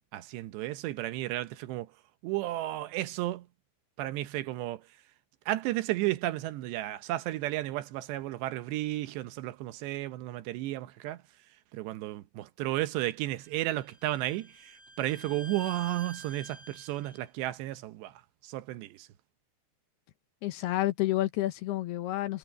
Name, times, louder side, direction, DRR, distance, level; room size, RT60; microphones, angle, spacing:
voice 1, 0.1-1.9 2.2-3.5 4.0-4.8 5.5-11.2 11.7-18.1 18.4-19.1, right 16 dB, 75° right, 2.9 m, -33 dB
Bowed string instrument, 13.4-17.2, right 2 dB, 30° left, 7.5 m, -48 dB
voice 2, 20.4-22.4, left 16 dB, 75° left, 2.7 m, -29 dB
omnidirectional pair, 5.4 m